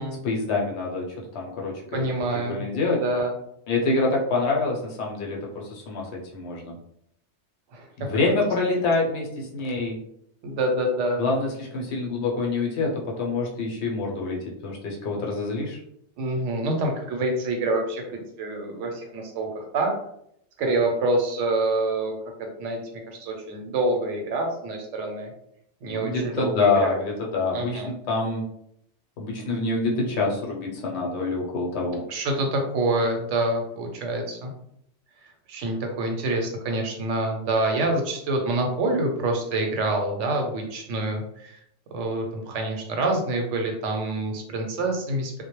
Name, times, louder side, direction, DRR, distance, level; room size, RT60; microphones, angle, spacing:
voice 1, 0.2-1.7 2.5-3.0 3.7-6.8 8.0-10.0 11.2-15.8 25.9-28.4 29.2-32.1, left 3 dB, 70° left, -2 dB, 0.9 m, -26 dB
voice 2, 1.9-2.6 3.0-3.3 7.7-8.1 10.4-11.2 16.2-19.9 20.6-22.1 22.4-22.8 23.1-25.3 25.8-27.0 27.5-27.9 32.1-34.5 35.5-41.6 41.9-45.4, right 2 dB, 85° right, 2 dB, 1.0 m, -26 dB
2.2 x 2.0 x 2.9 m, 0.74 s
omnidirectional pair, 1.2 m